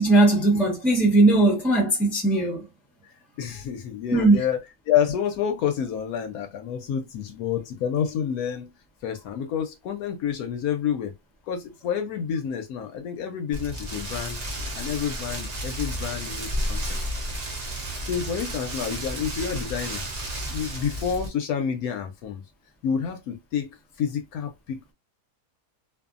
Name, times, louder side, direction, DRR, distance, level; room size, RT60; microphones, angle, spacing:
voice 1, 0.0-2.7 4.1-4.4, right 2 dB, ahead, 0.7 m, -19 dB
voice 2, 3.0-4.6 4.9-8.7 9.0-11.1 11.5-14.4 14.7-17.0 18.0-20.1 20.5-22.4 22.8-24.9, left 8 dB, 70° left, 1.0 m, -29 dB
Rain, 13.5-21.3, right 1 dB, 70° right, 0.3 m, -32 dB
2.6 x 2.6 x 2.4 m
omnidirectional pair, 1.7 m